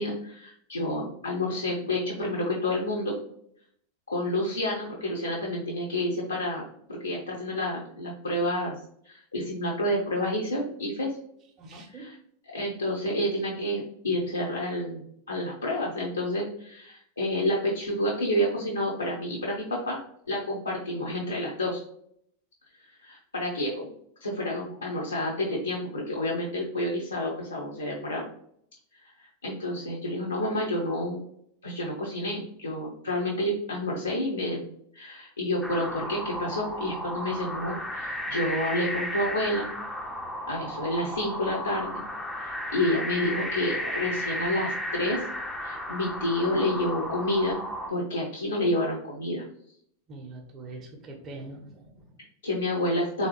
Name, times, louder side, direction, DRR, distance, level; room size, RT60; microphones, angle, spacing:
voice 1, 0.0-3.2 4.1-8.8 9.0-11.1 12.0-12.1 12.5-15.0 15.3-20.0 20.3-21.8 22.8-23.9 24.2-28.3 29.2-31.2 31.6-39.7 40.5-42.0 42.4-45.2 45.6-47.6 47.9-49.4 52.4-53.3, left 1 dB, 80° left, -3 dB, 0.8 m, -29 dB
voice 2, 11.6-12.1 19.0-19.1 50.1-52.2, right 2 dB, 30° right, 1 dB, 0.8 m, -43 dB
sound 1, 35.6-47.9, equal, 5° left, 0.5 m, -34 dB
3.8 x 3.1 x 3.0 m, 0.69 s
figure-of-eight pair, 90°, 0 cm